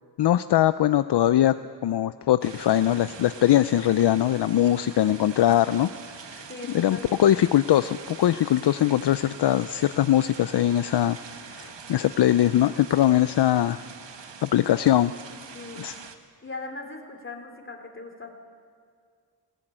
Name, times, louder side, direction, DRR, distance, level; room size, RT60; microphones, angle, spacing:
voice 1, 0.2-1.5 1.8-5.9 6.3-6.5 6.7-11.2 11.5-13.8 14.4-15.1 15.8-15.9, left 12 dB, 65° left, 13 dB, 0.5 m, -21 dB
sound 1, 2.4-16.2, right 6 dB, 75° right, 1.6 m, -44 dB
voice 2, 6.5-7.3 14.6-14.7 15.2-15.9 16.4-18.3, left 3 dB, 25° left, 3 dB, 3.1 m, -40 dB
20.5 x 18.0 x 9.0 m, 2.1 s
wide cardioid pair, 120°, 43 cm